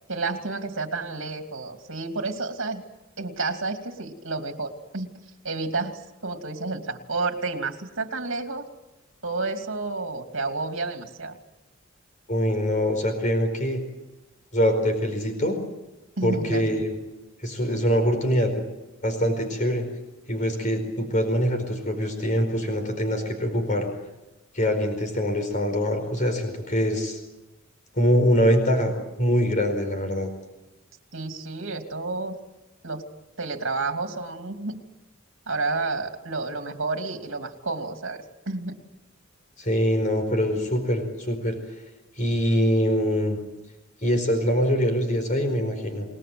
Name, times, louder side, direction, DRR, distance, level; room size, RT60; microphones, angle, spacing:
voice 1, 0.1-2.8 3.2-5.1 5.4-8.6 9.2-11.4 16.2-16.8 31.1-32.4 32.8-33.0 33.4-34.8 35.5-38.8, right 3 dB, 70° right, 5 dB, 2.8 m, -30 dB
voice 2, 12.3-13.8 14.5-15.6 16.2-16.9 17.4-18.6 19.0-19.8 20.3-23.9 24.5-27.2 28.0-30.3 39.6-41.6 42.2-43.4 44.0-46.1, equal, 40° left, 6 dB, 4.7 m, -24 dB
29.0 x 20.0 x 7.9 m, 1.0 s
head